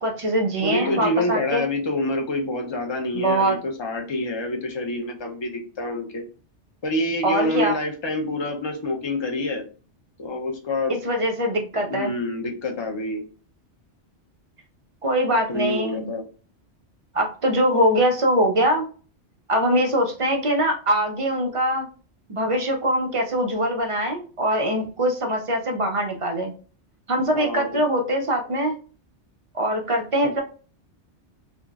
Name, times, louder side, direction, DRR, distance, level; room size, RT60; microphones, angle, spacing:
voice 1, 0.0-1.7 3.1-3.6 7.2-7.7 11.0-12.1 15.0-16.1 17.1-18.9 19.5-21.8 22.3-26.5 27.1-28.8 29.5-30.4, equal, 60° right, 2 dB, 0.3 m, -22 dB
voice 2, 0.6-6.2 6.8-9.6 10.2-10.9 11.9-13.2 15.5-16.2 27.3-27.8, left 1 dB, 45° left, 2 dB, 0.3 m, -27 dB
3.5 x 2.0 x 2.3 m, 0.37 s
omnidirectional pair, 1.2 m